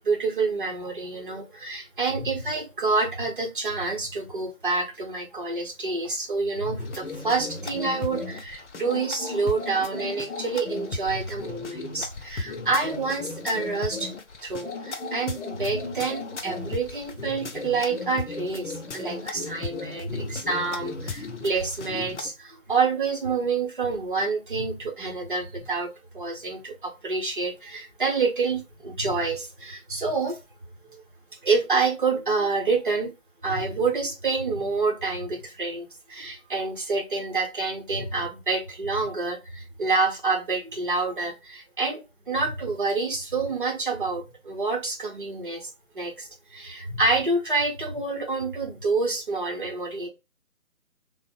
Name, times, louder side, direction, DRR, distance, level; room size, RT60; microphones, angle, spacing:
voice 1, 0.0-14.1 14.4-30.4 31.4-33.1 33.4-45.7 45.9-50.1, right 4 dB, 40° right, 2 dB, 0.7 m, -27 dB
sound 1, 6.8-22.3, left 3 dB, 55° left, 0.6 m, -36 dB
2.9 x 2.0 x 2.5 m, 0.25 s
figure-of-eight pair, 150°, 42 cm